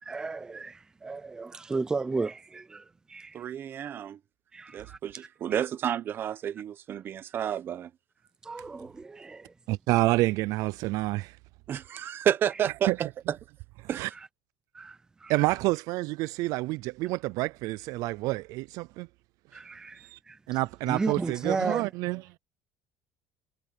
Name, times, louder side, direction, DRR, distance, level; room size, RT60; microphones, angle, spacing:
voice 1, 0.0-3.5 4.5-5.0 8.4-9.5 14.1-14.3 14.7-15.3 19.5-20.4 20.9-21.9, right 3 dB, 10° right, 0.6 m, -34 dB
voice 2, 3.3-4.2 4.7-7.9 11.7-13.4 13.9-14.1, right 10 dB, 30° right, 0.8 m, -30 dB
voice 3, 9.7-11.4 12.9-13.0 13.8-14.1 15.3-19.1 19.5-19.6 19.9-20.2 20.5-22.4, right 20 dB, 60° right, 0.4 m, -28 dB
cardioid pair, 175°, 7 cm